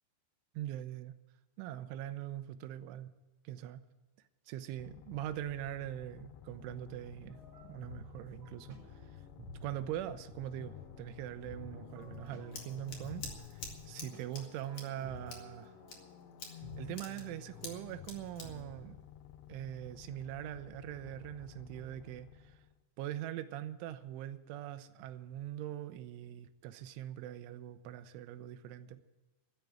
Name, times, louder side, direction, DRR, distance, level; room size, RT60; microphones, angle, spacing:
voice 1, 0.5-1.2 1.6-3.1 3.4-3.8 4.5-7.4 7.7-8.8 9.6-13.2 13.5-15.7 16.8-19.0 19.5-22.6 23.0-29.0, right 12 dB, 80° right, 3.0 m, -42 dB
sound 1, 4.8-22.8, left 11 dB, 80° left, 2.8 m, -53 dB
sound 2, 7.3-18.9, right 1 dB, 45° right, 2.1 m, -54 dB
Scissors, 12.0-19.8, left 3 dB, 50° left, 1.8 m, -49 dB
14.0 x 8.3 x 9.2 m
omnidirectional pair, 5.8 m